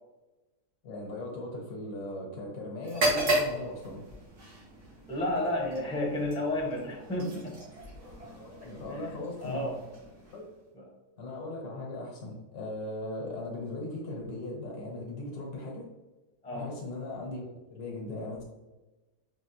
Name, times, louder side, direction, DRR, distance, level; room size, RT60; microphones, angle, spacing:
voice 1, 0.8-4.0 8.2-9.7 10.3-10.4 11.2-15.8 16.5-18.4, left 2 dB, 75° left, -2 dB, 1.5 m, -38 dB
sound 1, 2.8-10.6, right 1 dB, 80° right, 1.9 m, -35 dB
voice 2, 5.1-7.6 8.9-9.0 9.4-9.7 10.7-10.9 16.4-16.7, left 1 dB, 5° left, -2 dB, 0.6 m, -31 dB
5.4 x 2.9 x 2.9 m, 1.1 s
omnidirectional pair, 1.6 m